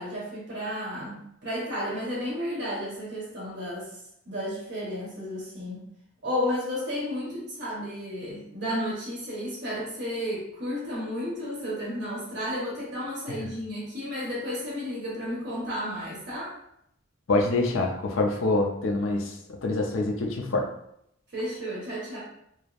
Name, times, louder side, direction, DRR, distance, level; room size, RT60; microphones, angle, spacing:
voice 1, 0.0-3.9 4.3-5.8 6.2-16.5 21.3-22.2, equal, 60° right, -6 dB, 1.0 m, -32 dB
voice 2, 17.3-19.3 19.6-20.7, left 2 dB, 75° left, 1 dB, 0.5 m, -25 dB
3.1 x 2.0 x 2.4 m, 0.74 s
head